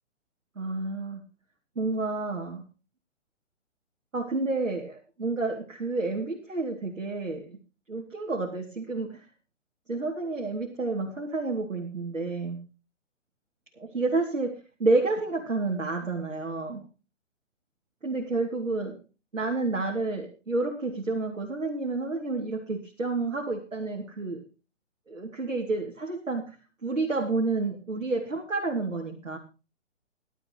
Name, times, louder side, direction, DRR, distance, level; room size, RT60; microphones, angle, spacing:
voice 1, 0.6-1.2 1.8-2.6 4.1-7.6 7.9-9.2 9.9-12.6 13.8-16.8 18.0-19.0 19.3-24.4 25.1-26.6 26.8-29.4, right 3 dB, 90° right, 0 dB, 2.8 m, -30 dB
18.0 x 12.5 x 3.0 m, 0.32 s
figure-of-eight pair, 135°, 38 cm